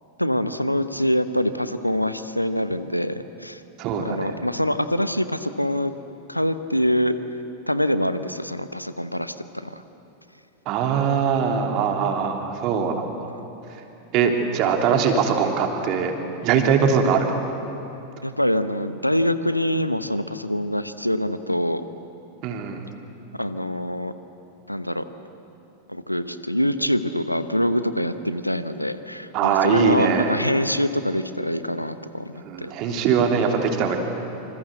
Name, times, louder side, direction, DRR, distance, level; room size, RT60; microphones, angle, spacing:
voice 1, 0.2-3.6 4.0-5.9 6.3-7.1 7.7-9.8 18.2-21.8 23.4-24.1 24.7-25.0 25.9-32.7, equal, 90° left, 12 dB, 1.0 m, -24 dB
voice 2, 3.8-4.3 10.7-13.3 14.1-16.1 16.4-17.4 22.4-22.8 29.3-30.4 32.4-34.0, right 6 dB, 40° right, 3 dB, 3.3 m, -22 dB
27.5 x 26.0 x 8.0 m, 2.9 s
figure-of-eight pair, 90°, 0 cm